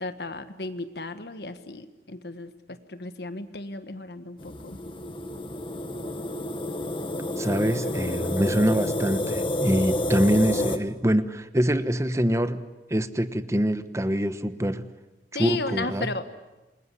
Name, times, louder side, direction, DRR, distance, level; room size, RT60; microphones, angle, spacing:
voice 1, 0.0-4.8 15.3-16.2, left 3 dB, 65° left, 10 dB, 1.4 m, -34 dB
sound 1, 4.4-10.8, left 1 dB, 30° left, 1.5 m, -29 dB
voice 2, 7.4-12.6 12.9-14.9 15.4-16.1, equal, 15° right, 11 dB, 1.1 m, -24 dB
27.5 x 21.5 x 9.9 m, 1.1 s
head